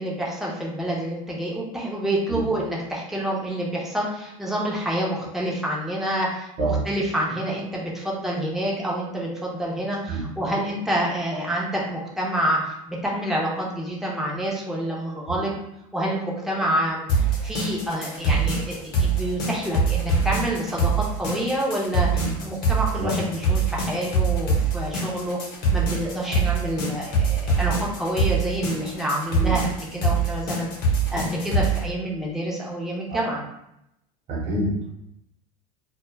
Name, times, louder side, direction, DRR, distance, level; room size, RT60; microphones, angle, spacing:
voice 1, 0.0-15.5 15.9-25.4 25.7-33.4, right 1 dB, ahead, -4 dB, 0.6 m, -28 dB
sound 1, 17.1-31.8, right 3 dB, 50° left, 1.0 m, -23 dB
voice 2, 34.3-34.9, right 2 dB, 40° right, -5 dB, 0.8 m, -26 dB
2.3 x 2.0 x 3.1 m, 0.83 s
supercardioid pair, 115°, 19 cm